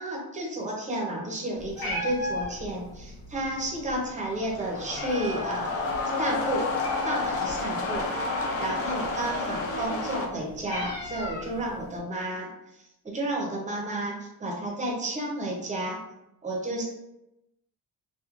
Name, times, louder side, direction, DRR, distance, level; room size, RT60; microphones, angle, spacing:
voice 1, 0.0-5.8 6.2-6.7 7.0-8.1 8.6-12.5 13.0-16.0 16.4-16.8, right 1 dB, 20° right, -1 dB, 0.6 m, -31 dB
Meow, 1.6-12.0, left 1 dB, 65° left, 1.1 m, -39 dB
sound 1, 4.2-10.3, left 3 dB, 40° left, 0.4 m, -30 dB
2.9 x 2.2 x 2.4 m, 0.89 s
cardioid pair, 155°, 38 cm